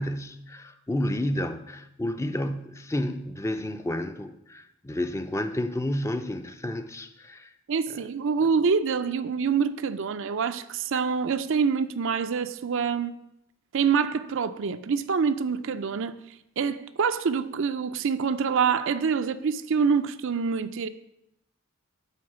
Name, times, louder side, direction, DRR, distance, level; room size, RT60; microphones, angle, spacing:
voice 1, 0.0-7.5, left 1 dB, 15° left, 0.5 m, -31 dB
voice 2, 7.7-13.2 13.7-16.2 16.6-20.9, right 6 dB, 65° right, 0.5 m, -26 dB
11.0 x 3.9 x 7.3 m
head